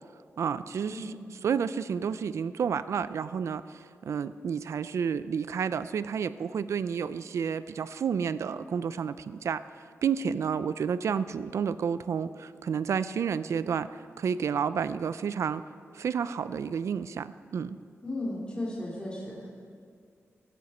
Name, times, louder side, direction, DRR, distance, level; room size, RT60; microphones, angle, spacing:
voice 1, 0.4-1.2 1.4-9.6 10.0-13.9 14.2-15.6 15.9-17.8, right 7 dB, 75° right, 14 dB, 0.5 m, -30 dB
voice 2, 18.0-19.3, left 1 dB, 20° left, -6 dB, 3.1 m, -35 dB
17.5 x 14.5 x 4.3 m, 2.2 s
wide cardioid pair, 110°, 5 cm